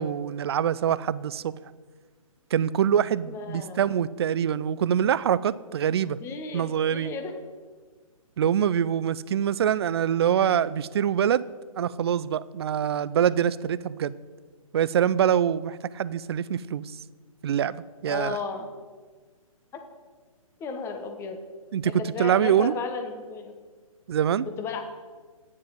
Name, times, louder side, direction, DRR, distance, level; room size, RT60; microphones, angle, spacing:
voice 1, 0.0-1.5 2.5-6.2 6.5-7.1 8.4-11.5 11.8-14.1 14.7-17.0 17.4-18.4 21.7-22.7 24.1-24.5, right 9 dB, 45° right, 18 dB, 0.4 m, -24 dB
voice 2, 3.3-3.8 6.2-7.3 18.1-18.7 19.7-19.8 20.6-21.4 21.8-23.5 24.6-24.8, left 5 dB, 15° left, 5 dB, 1.1 m, -34 dB
9.5 x 7.5 x 7.5 m, 1.4 s
figure-of-eight pair, 135°, 18 cm